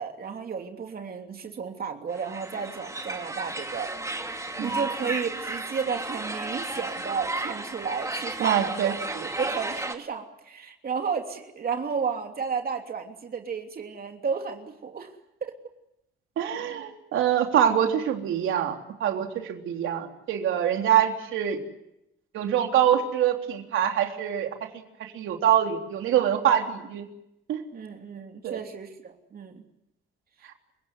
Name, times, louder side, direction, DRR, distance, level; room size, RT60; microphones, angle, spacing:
voice 1, 0.0-3.9 4.3-9.0 9.4-15.1 15.4-15.5 27.7-29.6, right 6 dB, 50° right, 4 dB, 3.1 m, -33 dB
sound 1, 2.1-10.0, right 2 dB, 15° right, 2.8 m, -33 dB
voice 2, 8.4-9.3 16.4-18.8 19.0-21.6 22.3-27.1 27.5-27.6 28.4-28.6 30.4-30.5, right 10 dB, 80° right, 3 dB, 3.6 m, -25 dB
29.0 x 17.5 x 9.6 m, 0.84 s
cardioid pair, 90°, 20 cm